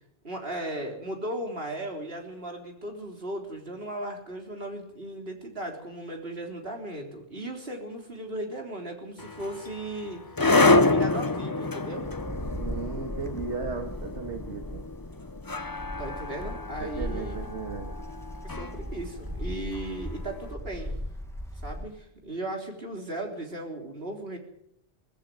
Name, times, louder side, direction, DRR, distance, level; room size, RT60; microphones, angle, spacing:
voice 1, 0.2-12.1 16.0-17.5 18.4-21.0 21.6-24.4, right 1 dB, 55° right, 3 dB, 4.0 m, -37 dB
sound 1, 9.2-20.3, left 2 dB, 20° left, 0.8 m, -28 dB
Wind, 11.9-21.9, equal, ahead, 1.9 m, -38 dB
voice 2, 12.6-14.8 16.8-17.9, right 4 dB, 80° right, 4 dB, 2.1 m, -36 dB
20.0 x 15.0 x 9.5 m, 0.74 s
omnidirectional pair, 1.2 m